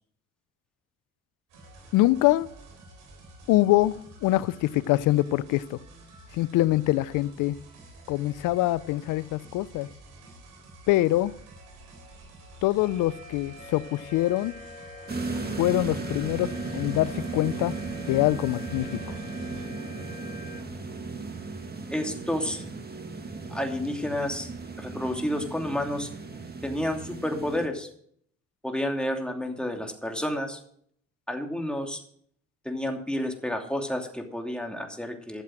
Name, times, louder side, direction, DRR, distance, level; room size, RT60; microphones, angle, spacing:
sound 1, 1.5-19.7, right 2 dB, 85° right, 3.5 m, -50 dB
voice 1, 1.9-2.5 3.5-5.8 6.3-7.6 8.1-9.9 10.9-11.3 12.6-14.6 15.6-17.7 18.1-19.2, left 16 dB, 80° left, 0.6 m, -24 dB
sound 2, 12.8-20.6, left 2 dB, 20° left, 4.4 m, -45 dB
sound 3, 15.1-27.7, right 3 dB, 30° right, 2.0 m, -36 dB
voice 2, 21.9-22.6 23.5-24.5 24.8-26.1 26.6-27.9 28.6-30.6 31.3-32.0 32.6-35.4, left 1 dB, 5° left, 2.7 m, -30 dB
12.5 x 7.4 x 6.4 m
supercardioid pair, 65°, 31 cm